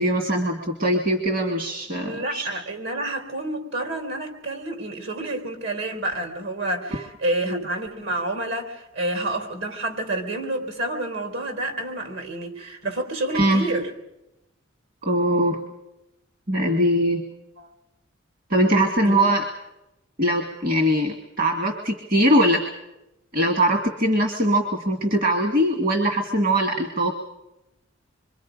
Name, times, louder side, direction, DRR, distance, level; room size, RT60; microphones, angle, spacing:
voice 1, 0.0-2.5 6.9-7.0 7.4-7.7 13.3-13.7 15.0-15.6 16.5-17.2 18.5-19.4 20.2-22.6 23.3-27.1, equal, 45° right, 3 dB, 1.8 m, -21 dB
voice 2, 2.0-13.9 17.6-17.7 19.0-19.2, right 1 dB, 70° right, 5 dB, 3.7 m, -29 dB
26.5 x 24.0 x 5.1 m, 0.94 s
head